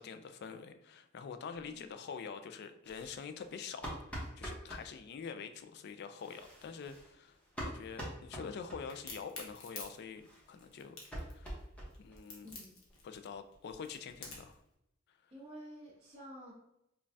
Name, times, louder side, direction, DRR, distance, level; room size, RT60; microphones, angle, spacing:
voice 1, 0.0-11.0 11.3-11.6 12.0-12.5 13.0-14.6, left 6 dB, 55° left, 9 dB, 0.3 m, -46 dB
sound 1, 2.8-4.9 6.0-9.1 9.4-9.5 9.8-9.9 10.2-12.2 12.5-12.6 12.9-13.0 13.3-13.4 13.7-14.5, equal, 5° left, 0.9 m, -46 dB
Crack, 8.9-14.6, left 3 dB, 90° left, 1.0 m, -49 dB
voice 2, 15.3-16.5, equal, 30° right, -12 dB, 1.3 m, -50 dB
5.2 x 2.3 x 2.6 m, 0.83 s
head